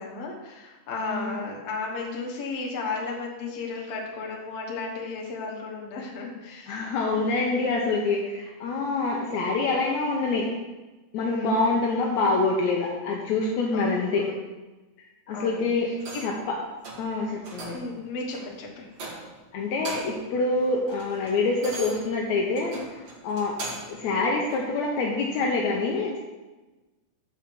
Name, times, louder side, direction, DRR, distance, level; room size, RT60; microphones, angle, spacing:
voice 1, 0.0-6.8 9.1-9.6 11.2-11.6 13.7-14.4 15.3-16.2 17.7-19.0, left 3 dB, 60° left, -2 dB, 2.2 m, -35 dB
voice 2, 6.7-10.5 11.1-14.2 15.3-15.9 16.2-16.6 17.0-17.8 19.5-22.8 23.2-23.6 23.9-26.2, left 3 dB, 80° left, -2 dB, 2.0 m, -26 dB
sound 1, 16.0-16.4 16.8-17.1 17.4-17.9 18.3-18.5 18.9-19.4 19.7-20.3 20.6-24.0 24.5-24.6, right 2 dB, 60° right, 2.4 m, -39 dB
5.7 x 5.0 x 6.6 m, 1.2 s
omnidirectional pair, 3.3 m